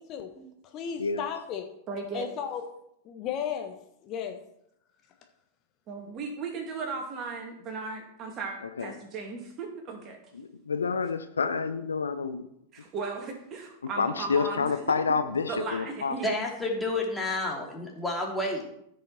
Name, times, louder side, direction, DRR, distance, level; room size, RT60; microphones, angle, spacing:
voice 1, 0.6-1.7 2.1-2.6 3.0-3.7 4.0-4.4, left 8 dB, 35° left, 4 dB, 1.3 m, -34 dB
voice 2, 1.9-2.3 5.9-10.2 12.7-14.7 15.5-16.3, right 4 dB, 30° right, 2 dB, 2.5 m, -36 dB
voice 3, 10.3-12.5 14.0-16.2, left 5 dB, 75° left, 10 dB, 0.7 m, -28 dB
voice 4, 16.2-18.6, left 2 dB, 5° left, -1 dB, 2.9 m, -30 dB
14.5 x 6.4 x 4.3 m, 0.75 s
figure-of-eight pair, 90°, 0 cm